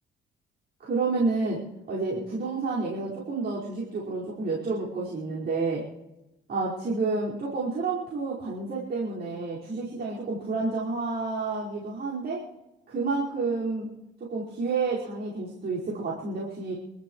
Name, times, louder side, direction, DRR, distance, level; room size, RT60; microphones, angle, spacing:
voice 1, 0.8-1.6 1.9-5.8 6.5-12.4 12.9-13.9 14.3-16.7, right 3 dB, 55° right, -7 dB, 5.1 m, -29 dB
27.0 x 14.0 x 3.2 m, 0.94 s
cardioid pair, 90°, 20 cm